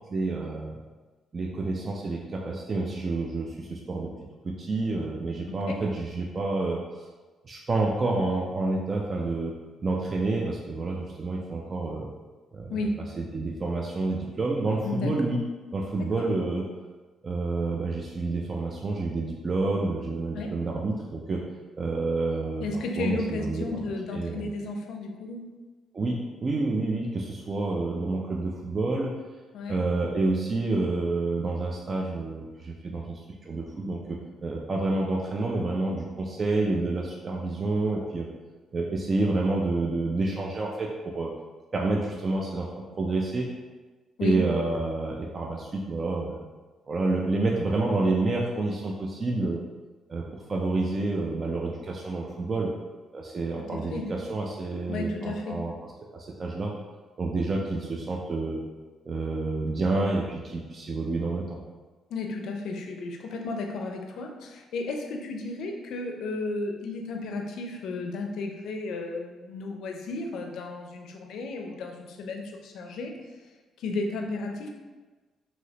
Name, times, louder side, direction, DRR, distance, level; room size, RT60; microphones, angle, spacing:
voice 1, 0.1-0.7 1.3-4.1 4.4-6.8 7.4-9.5 9.8-12.1 12.5-12.8 13.2-15.4 15.7-16.6 17.2-21.4 21.7-22.7 23.0-23.8 24.1-24.4 25.9-29.1 29.7-38.3 38.7-41.3 41.7-42.7 43.0-43.5 44.2-46.4 46.9-49.6 50.1-52.7 53.1-55.7 56.1-56.7 57.2-58.6 59.0-61.6, right 3 dB, 40° right, -1 dB, 0.4 m, -28 dB
voice 2, 12.7-13.0 14.8-15.2 16.0-16.3 20.3-20.5 22.6-25.4 29.5-29.8 44.2-44.4 53.7-54.1 54.9-55.6 62.1-73.1 73.8-74.7, left 3 dB, 80° left, 2 dB, 0.4 m, -33 dB
3.1 x 2.7 x 2.8 m, 1.3 s
cardioid pair, 90°, 0 cm